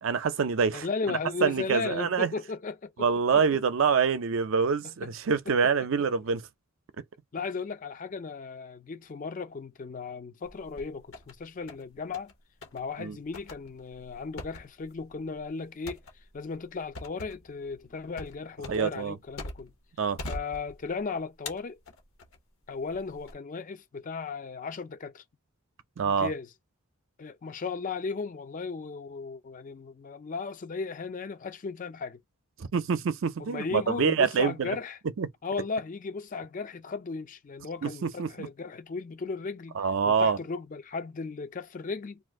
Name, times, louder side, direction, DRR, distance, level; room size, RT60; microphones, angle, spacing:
voice 1, 0.0-2.3 3.0-6.4 13.0-13.2 18.7-19.2 20.0-20.2 26.0-26.3 32.7-34.8 35.2-35.3 37.8-38.5 39.8-40.4, right 6 dB, 60° right, 0.4 m, -26 dB
voice 2, 0.7-3.4 4.8-5.1 7.3-12.3 12.7-16.0 16.3-19.7 20.2-21.8 22.7-25.2 26.0-26.5 27.2-32.2 33.4-35.0 35.4-42.2, left 4 dB, 35° left, 0.4 m, -36 dB
sound 1, 10.4-11.3 11.7-12.3 12.6-12.8 13.3-19.8 20.2-21.0 21.5-22.4 22.9-23.3, left 2 dB, 70° left, 0.9 m, -42 dB
2.5 x 2.4 x 3.4 m
head